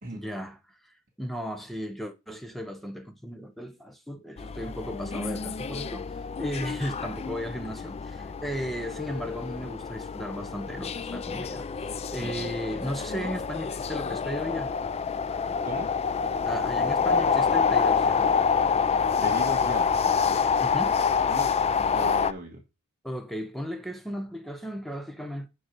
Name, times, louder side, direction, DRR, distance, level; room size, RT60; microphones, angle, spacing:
voice 1, 0.1-6.1 6.4-11.7 12.1-14.7 16.4-18.3 20.6-21.0 23.0-25.5, equal, ahead, 0.8 m, -35 dB
sound 1, 4.4-22.3, left 6 dB, 30° left, 0.4 m, -27 dB
voice 2, 12.2-12.5 15.6-15.9 19.2-19.9 21.3-21.5 21.8-22.6, right 1 dB, 40° right, 1.4 m, -37 dB
9.1 x 5.4 x 4.5 m
head